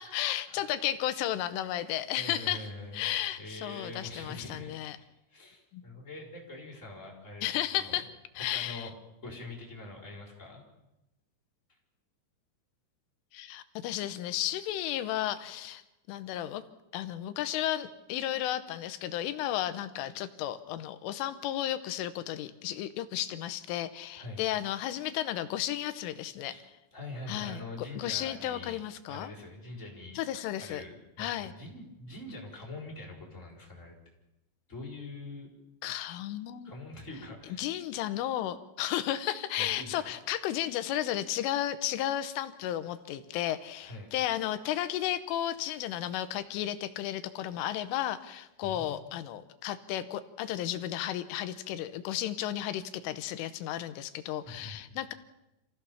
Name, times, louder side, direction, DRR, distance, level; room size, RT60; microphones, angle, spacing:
voice 1, 0.0-2.7 2.9-5.0 5.7-5.8 7.4-8.1 8.4-8.9 13.3-15.8 16.1-16.6 16.9-26.5 27.3-27.6 28.0-29.3 30.2-30.8 31.2-31.5 35.8-36.7 37.6-55.1, left 12 dB, 80° left, 11 dB, 3.5 m, -33 dB
voice 2, 2.1-3.1 3.4-8.0 8.4-8.9 9.2-10.6 24.2-24.4 26.5-28.8 29.1-30.2 30.6-33.9 34.7-35.5 36.6-37.6 39.6-40.0 43.8-44.1 48.6-49.1 54.4-55.0, left 2 dB, 15° left, -2 dB, 5.3 m, -44 dB
27.0 x 16.0 x 7.1 m, 0.92 s
omnidirectional pair, 5.9 m